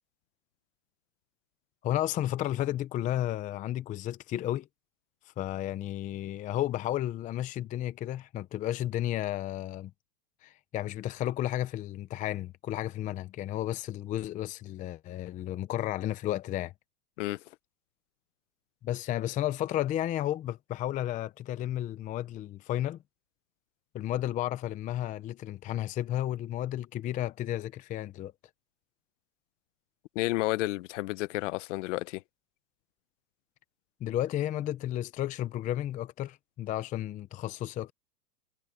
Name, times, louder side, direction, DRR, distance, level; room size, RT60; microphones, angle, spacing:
voice 1, 1.8-4.7 5.4-9.9 10.4-16.7 18.8-23.0 23.9-28.3 34.0-37.9, left 13 dB, 15° left, 0.6 m, -32 dB
voice 2, 30.1-32.2, left 20 dB, 50° left, 1.0 m, -31 dB
hypercardioid pair, 135°, 48 cm